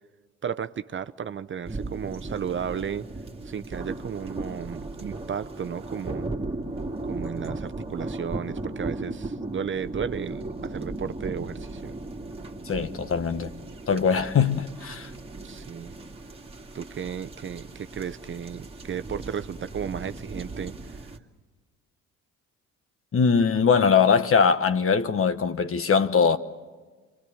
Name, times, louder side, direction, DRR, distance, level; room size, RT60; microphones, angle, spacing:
voice 1, 0.4-3.1 3.4-6.3 7.0-11.9 15.4-15.9 16.7-21.0, right 7 dB, 40° right, 0.8 m, -34 dB
sound 1, 1.6-21.2, right 2 dB, 20° right, 2.2 m, -37 dB
voice 2, 12.7-13.5 13.9-15.1 23.1-26.4, left 6 dB, 45° left, 1.4 m, -21 dB
27.5 x 24.0 x 7.1 m
cardioid pair, 90°, 30 cm